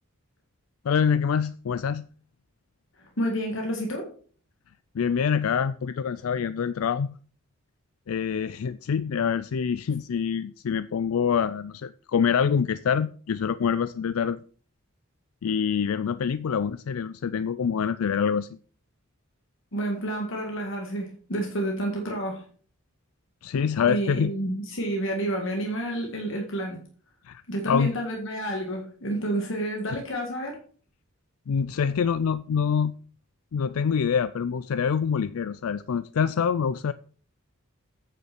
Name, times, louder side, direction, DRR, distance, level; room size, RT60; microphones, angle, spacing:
voice 1, 0.9-2.0 4.9-7.2 8.1-14.4 15.4-18.5 23.4-24.3 27.3-27.9 31.5-32.9 33.5-36.9, left 7 dB, 85° left, 14 dB, 0.4 m, -25 dB
voice 2, 3.0-4.1 19.7-22.5 23.9-26.8 27.5-30.6, right 1 dB, 60° left, 1 dB, 2.0 m, -29 dB
9.1 x 5.6 x 6.0 m, 0.42 s
head